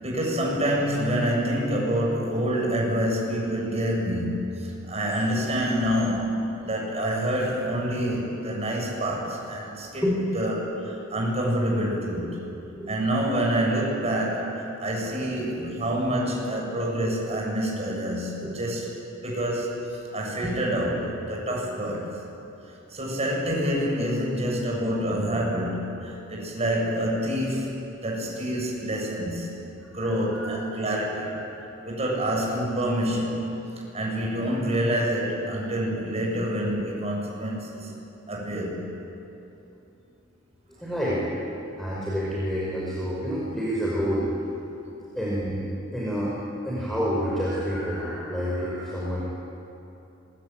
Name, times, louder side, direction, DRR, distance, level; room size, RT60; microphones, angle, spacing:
voice 1, 0.0-10.0 10.3-12.4 12.9-18.9 19.2-22.1 22.9-25.8 26.0-27.7 28.0-29.5 29.8-31.4 31.8-33.5 33.9-37.9 38.3-38.8, equal, 35° right, -2 dB, 7.8 m, -27 dB
voice 2, 30.0-30.6 40.8-44.3 45.1-45.6 45.9-46.3 46.6-49.2, equal, ahead, -7 dB, 5.3 m, -29 dB
26.0 x 22.5 x 9.2 m, 2.9 s
head